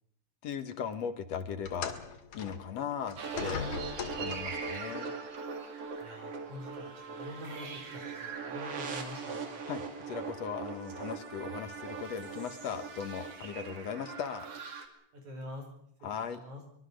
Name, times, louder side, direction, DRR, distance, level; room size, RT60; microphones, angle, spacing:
voice 1, 0.4-1.9 2.3-3.7 4.2-5.1 9.7-9.8 10.1-14.5 16.0-16.4, left 7 dB, 65° left, 10 dB, 2.4 m, -38 dB
sound 1, 1.6-4.7 5.7-5.9 6.7-6.8, left 6 dB, 80° left, 3.6 m, -40 dB
sound 2, 3.2-14.9, right 5 dB, 50° right, 3.4 m, -40 dB
voice 2, 6.0-9.5 15.1-15.7 16.0-16.6, left 1 dB, 75° right, 4 dB, 6.8 m, -45 dB
24.5 x 22.0 x 6.6 m, 0.68 s
omnidirectional pair, 3.4 m